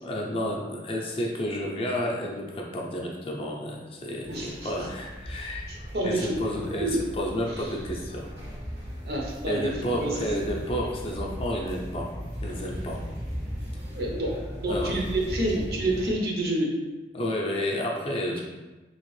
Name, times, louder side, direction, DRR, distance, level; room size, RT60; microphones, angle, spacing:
voice 1, 0.0-5.7 6.0-8.3 9.5-12.2 12.4-13.0 14.7-14.9 17.1-18.4, equal, 30° left, -1 dB, 0.5 m, -31 dB
sound 1, 4.2-16.1, equal, 90° right, 1.3 m, -37 dB
voice 2, 4.3-4.7 5.7-6.4 6.8-7.0 7.5-7.7 9.1-10.4 13.9-14.3 14.6-16.7, right 1 dB, 60° right, -2 dB, 0.7 m, -29 dB
3.4 x 2.9 x 3.1 m, 1.2 s
head